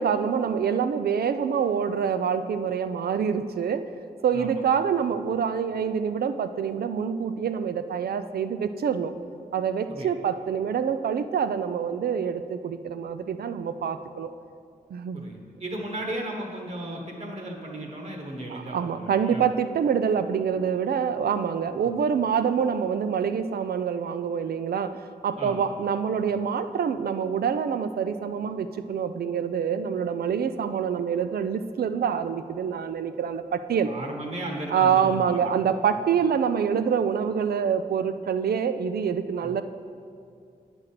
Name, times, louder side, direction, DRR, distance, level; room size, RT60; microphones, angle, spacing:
voice 1, 0.0-4.0 4.2-9.1 9.5-14.3 14.9-15.3 18.5-33.9 34.7-39.6, right 7 dB, 90° right, 11 dB, 0.4 m, -26 dB
voice 2, 15.1-19.4 21.8-22.0 25.4-25.7 33.8-35.5 39.4-39.5, right 1 dB, 45° right, 0 dB, 1.3 m, -35 dB
9.2 x 6.2 x 5.8 m, 2.4 s
wide cardioid pair, 140°, 16 cm